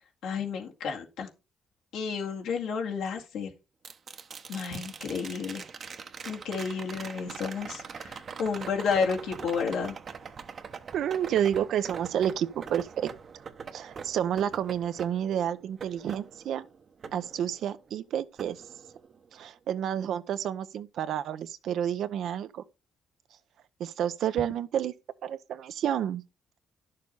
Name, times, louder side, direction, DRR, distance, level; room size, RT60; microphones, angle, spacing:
voice 1, 0.2-1.3 1.9-3.5 4.5-5.6 6.3-10.0, left 5 dB, 85° left, 2.1 m, -31 dB
sound 1, 3.8-17.9 18.4-19.4 21.7-21.8, right 6 dB, 50° right, 0.9 m, -43 dB
voice 2, 10.9-13.1 13.7-16.7 17.1-18.6 19.3-22.6 23.8-24.9 25.2-26.2, right 9 dB, 75° right, 0.7 m, -30 dB
10.5 x 6.7 x 4.1 m
cardioid pair, 90°, 0 cm